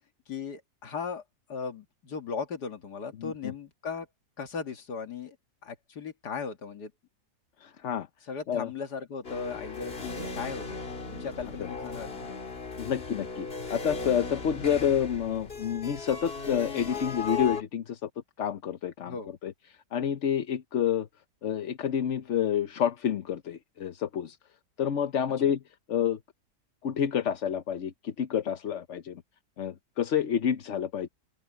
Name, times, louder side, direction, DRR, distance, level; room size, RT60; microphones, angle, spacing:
voice 1, 0.3-1.2 1.5-4.1 4.4-5.4 5.6-6.9 8.3-10.8 11.1-12.4 19.1-19.3 25.4-25.5, left 5 dB, 75° left, 2.2 m, -37 dB
voice 2, 3.2-3.5 7.6-8.1 8.5-8.7 11.6-11.7 12.8-18.1 18.4-19.1 19.4-19.5 19.9-21.1 21.4-24.4 24.8-25.6 25.9-26.2 26.8-29.2 29.6-31.1, left 8 dB, 55° left, 1.0 m, -29 dB
sound 1, 9.2-17.6, left 4 dB, 35° left, 2.0 m, -37 dB
open air
omnidirectional pair, 1.8 m